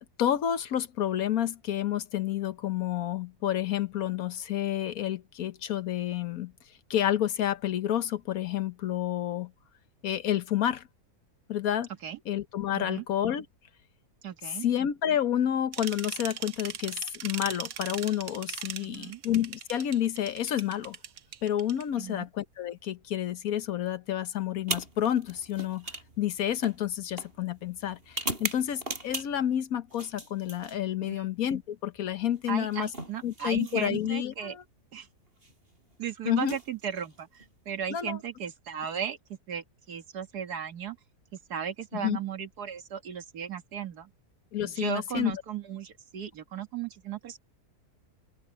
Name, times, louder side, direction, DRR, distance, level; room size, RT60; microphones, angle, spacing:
voice 1, 0.2-6.5 6.9-9.5 10.0-10.9 11.5-11.9 12.3-13.4 14.6-21.0 21.4-25.9 26.2-32.9 33.2-34.5 36.3-36.6 37.9-38.2 41.9-42.2 44.5-45.3, left 11 dB, 65° left, 1.3 m, -29 dB
voice 2, 12.7-13.0 14.2-14.7 18.8-19.2 22.0-22.3 31.1-31.3 32.5-34.6 34.9-35.1 36.0-41.0 41.5-44.1 44.6-47.4, right 8 dB, 80° right, 2.0 m, -36 dB
sound 1, 15.7-21.8, right 8 dB, 55° right, 1.2 m, -39 dB
sound 2, 24.6-29.5 29.9-31.2 32.4-34.2 35.3-35.5 36.3-37.5, right 2 dB, 35° right, 5.6 m, -39 dB
open air
omnidirectional pair, 1.7 m